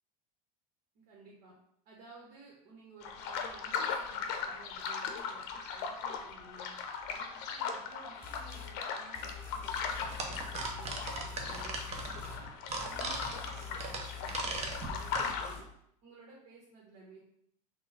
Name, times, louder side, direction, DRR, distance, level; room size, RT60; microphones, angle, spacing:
voice 1, 0.9-1.5 1.8-6.7 7.1-12.5 12.8-15.6 16.0-17.2, right 3 dB, 70° right, -4 dB, 1.1 m, -55 dB
sound 1, 3.0-15.5, left 6 dB, 55° left, 0.6 m, -39 dB
sound 2, 8.2-8.7 9.1-12.4 12.7-15.6, left 7 dB, 10° left, 0.9 m, -46 dB
sound 3, 10.0-15.3, right 3 dB, 35° right, 0.7 m, -39 dB
3.7 x 2.2 x 4.1 m, 0.71 s
hypercardioid pair, 85°, 20 cm